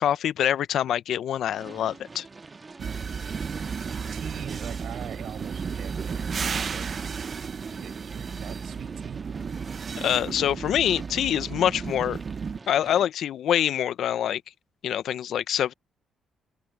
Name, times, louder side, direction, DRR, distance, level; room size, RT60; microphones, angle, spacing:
voice 1, 0.0-2.3 9.9-12.2 12.7-14.4 14.8-15.7, left 10 dB, 70° left, 0.7 m, -25 dB
sound 1, 1.4-13.1, right 3 dB, 30° right, 1.5 m, -46 dB
sound 2, 2.8-12.6, right 6 dB, 45° right, 0.7 m, -33 dB
voice 2, 2.8-3.1 3.5-7.3 7.8-9.2, right 11 dB, 75° right, 6.1 m, -43 dB
cardioid pair, 90°, 0 cm